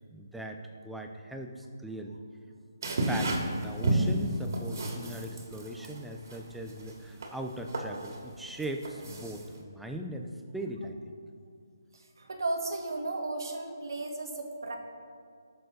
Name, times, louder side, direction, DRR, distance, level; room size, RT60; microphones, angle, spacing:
voice 1, 0.1-2.2 3.1-10.9, right 1 dB, ahead, 3 dB, 0.4 m, -39 dB
sound 1, 2.8-9.6, right 1 dB, 55° right, 2.2 m, -32 dB
voice 2, 11.9-14.8, right 2 dB, 70° right, 3 dB, 1.8 m, -35 dB
18.0 x 6.8 x 4.0 m, 2.2 s
hypercardioid pair, 170°, 2 cm